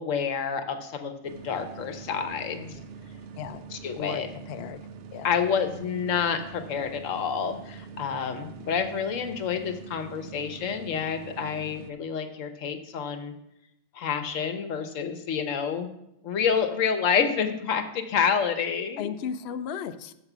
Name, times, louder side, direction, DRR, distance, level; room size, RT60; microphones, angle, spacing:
voice 1, 0.0-2.8 3.8-4.3 5.2-13.3 13.9-15.9 16.2-19.1, left 7 dB, 85° left, 7 dB, 1.2 m, -28 dB
sound 1, 1.2-11.9, right 5 dB, 60° right, 0.7 m, -44 dB
voice 2, 4.0-4.8 5.1-5.3 19.0-20.1, left 8 dB, 65° left, 10 dB, 0.7 m, -35 dB
6.7 x 6.5 x 5.9 m, 0.83 s
omnidirectional pair, 1.3 m